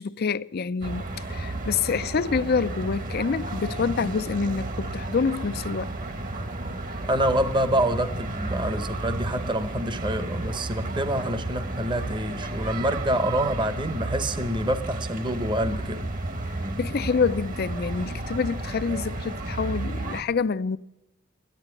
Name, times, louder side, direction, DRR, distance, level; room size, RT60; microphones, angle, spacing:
voice 1, 0.0-5.9 16.8-20.8, left 5 dB, 50° left, 0.5 m, -27 dB
sound 1, 0.8-20.2, right 2 dB, 40° right, 1.2 m, -32 dB
voice 2, 7.0-16.1, right 1 dB, 25° right, 0.9 m, -27 dB
14.0 x 10.5 x 9.6 m
head